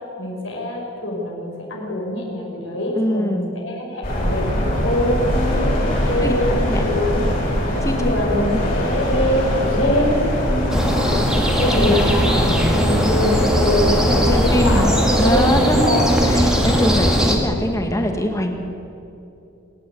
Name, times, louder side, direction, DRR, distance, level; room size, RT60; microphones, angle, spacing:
voice 1, 0.2-5.2 6.0-7.3 7.9-10.2 10.8-11.2 11.5-12.3 12.7-16.2, left 1 dB, 65° left, -1 dB, 5.7 m, -23 dB
voice 2, 2.9-3.5 5.3-5.8 6.2-6.3 6.6-6.9 7.8-8.3 8.5-8.6 10.5-10.8 11.8-12.0 12.3-12.6 14.3-14.9 15.2-18.6, equal, 15° left, 4 dB, 1.9 m, -23 dB
sound 1, 4.0-17.2, equal, 40° left, 5.8 m, -22 dB
sound 2, 10.7-17.4, equal, 5° right, 2.2 m, -20 dB
27.5 x 12.0 x 8.6 m, 2.8 s
head